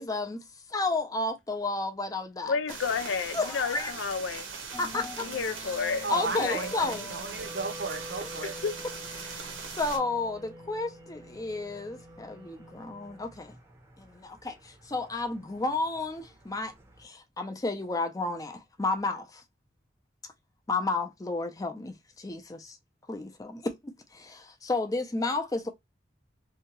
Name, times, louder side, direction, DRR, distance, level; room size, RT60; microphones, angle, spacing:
voice 1, 0.0-2.6 3.3-4.0 4.8-5.3 5.5-5.8 6.1-7.0 9.2-13.5 14.0-16.7 17.0-19.4 20.7-22.8 23.1-25.7, left 3 dB, 20° left, 0.4 m, -32 dB
voice 2, 2.5-4.4 5.2-6.1 6.4-6.7 8.6-8.7, left 5 dB, 75° left, 0.4 m, -30 dB
sound 1, 2.7-10.0, right 5 dB, 90° right, 0.9 m, -40 dB
sound 2, 4.7-17.0, equal, 15° right, 0.7 m, -47 dB
voice 3, 6.0-8.6, right 4 dB, 55° right, 0.6 m, -35 dB
2.8 x 2.2 x 2.9 m
head